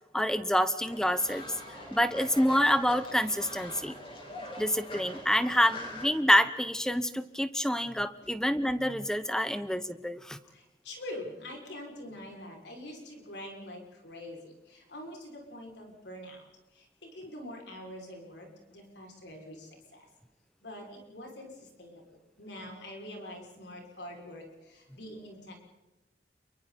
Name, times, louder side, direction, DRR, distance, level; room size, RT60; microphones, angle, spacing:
voice 1, 0.1-1.5 1.9-3.9 4.6-10.4, equal, 5° left, 12 dB, 0.9 m, -27 dB
Fowl, 0.9-6.1, left 1 dB, 30° left, 5.7 m, -43 dB
voice 2, 10.5-20.1 20.6-22.0 22.4-25.6, left 1 dB, 85° left, 1 dB, 6.3 m, -45 dB
28.5 x 23.0 x 4.3 m, 1.1 s
head